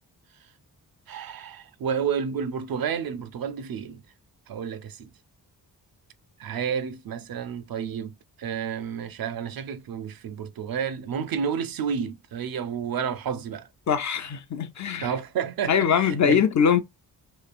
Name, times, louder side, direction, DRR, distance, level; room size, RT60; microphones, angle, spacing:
voice 1, 1.1-4.0 4.5-5.1 6.4-13.7 15.0-16.4, right 7 dB, 65° right, 0.5 m, -30 dB
voice 2, 13.9-15.1 15.7-16.8, left 7 dB, 45° left, 0.5 m, -22 dB
3.1 x 2.3 x 2.4 m
cardioid pair, 85°, 39 cm